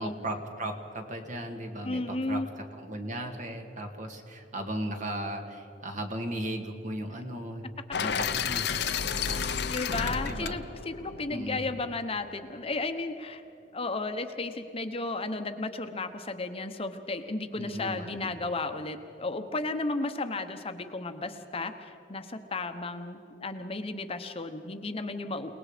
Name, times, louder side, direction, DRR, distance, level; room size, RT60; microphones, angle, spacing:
voice 1, 0.0-2.4 2.7-7.7 8.0-8.8 9.2-9.6 9.9-10.6 11.3-11.7 17.5-18.3, right 1 dB, 45° right, 4 dB, 2.1 m, -36 dB
voice 2, 1.8-2.5 9.7-13.4 13.7-25.6, left 3 dB, 35° left, 7 dB, 1.0 m, -34 dB
sound 1, 7.9-12.0, left 6 dB, 65° left, 0.8 m, -32 dB
29.0 x 19.0 x 5.1 m, 2.8 s
head